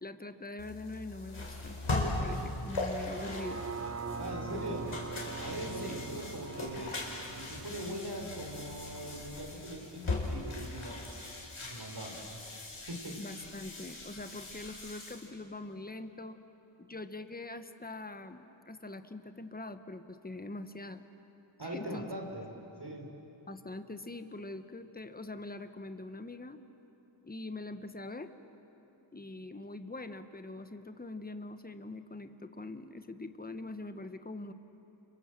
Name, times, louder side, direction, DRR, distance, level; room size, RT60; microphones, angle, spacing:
voice 1, 0.0-3.6 4.5-4.6 5.8-6.0 13.2-16.4 16.8-21.1 21.6-22.1 23.5-26.6 27.2-28.3 29.1-34.5, left 2 dB, 20° left, 9 dB, 1.2 m, -43 dB
sound 1, 0.6-15.3, left 2 dB, 80° left, 4.4 m, -39 dB
sound 2, 1.6-9.6, left 3 dB, 50° left, 1.8 m, -52 dB
sound 3, 3.1-9.2 9.6-9.7, right 5 dB, 30° right, 0.9 m, -43 dB
voice 2, 4.2-4.8 5.4-7.0 7.3-11.1 11.6-12.6 12.9-13.2 21.6-22.5 22.8-23.1, right 1 dB, 55° right, 0 dB, 4.4 m, -41 dB
29.5 x 26.0 x 7.6 m, 3.0 s
wide cardioid pair, 70°, 47 cm